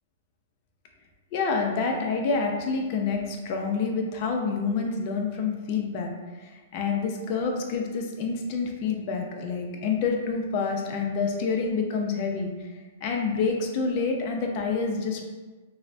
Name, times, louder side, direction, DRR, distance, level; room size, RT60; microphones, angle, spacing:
voice 1, 1.3-12.5 13.0-15.2, left 4 dB, 45° left, 2 dB, 0.4 m, -28 dB
3.1 x 2.0 x 2.5 m, 1.3 s
hypercardioid pair, 135°, 0 cm